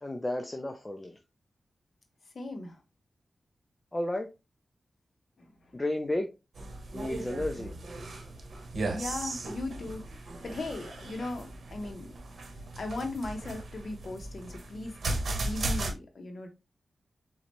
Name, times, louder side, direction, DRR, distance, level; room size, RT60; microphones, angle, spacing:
voice 1, 0.0-1.2 3.9-4.3 5.7-6.3 6.9-7.7, left 1 dB, 20° left, 0.6 m, -32 dB
voice 2, 2.3-2.8 5.4-5.5 8.9-10.1 10.4-12.1 12.8-15.0 15.3-16.5, left 2 dB, 55° left, 1.1 m, -38 dB
sound 1, 6.6-15.9, right 2 dB, 70° right, 1.1 m, -37 dB
4.2 x 3.9 x 3.1 m
wide cardioid pair, 100°, 0 cm